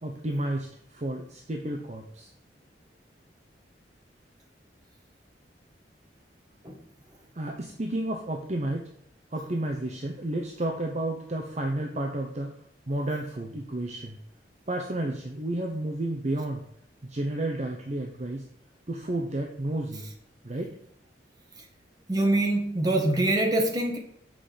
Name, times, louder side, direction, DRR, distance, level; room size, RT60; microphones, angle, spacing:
voice 1, 0.0-2.3 7.3-8.9 9.3-12.5 12.9-14.2 14.7-16.6 17.0-18.5 18.9-20.1 20.4-20.7, right 1 dB, 40° right, 2 dB, 0.8 m, -31 dB
voice 2, 22.1-24.0, right 1 dB, 20° right, 1 dB, 1.6 m, -24 dB
7.7 x 5.1 x 5.8 m, 0.72 s
head